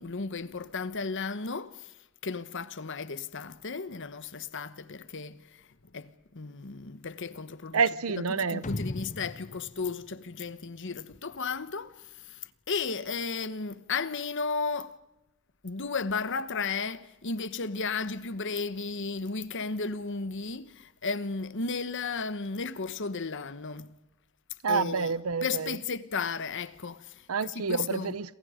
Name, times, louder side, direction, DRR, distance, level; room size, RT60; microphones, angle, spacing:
voice 1, 0.0-1.9 2.2-5.7 5.9-7.8 8.3-15.0 15.6-24.0 24.7-25.1 25.4-27.3 27.5-28.1, left 4 dB, 60° left, 1.2 m, -34 dB
voice 2, 7.7-8.6 24.6-25.8 27.3-28.3, right 5 dB, 90° right, 0.7 m, -28 dB
sound 1, 8.6-11.2, left 2 dB, 35° left, 0.7 m, -38 dB
28.0 x 27.0 x 5.1 m
head